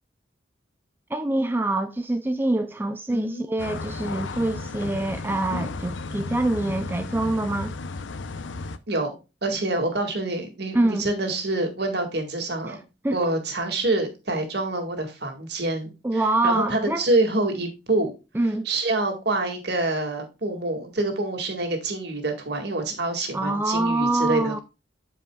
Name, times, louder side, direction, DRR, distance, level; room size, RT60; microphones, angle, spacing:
voice 1, 1.1-7.7 10.7-11.1 12.7-12.8 13.0-13.2 16.0-17.1 18.3-18.7 23.3-24.6, right 2 dB, 10° right, 0.4 m, -25 dB
voice 2, 3.1-3.5 8.9-12.9 13.1-18.1 18.6-24.6, right 2 dB, 60° right, 2.0 m, -26 dB
sound 1, 3.6-8.8, left 3 dB, 85° left, 0.6 m, -34 dB
13.0 x 4.9 x 2.3 m
head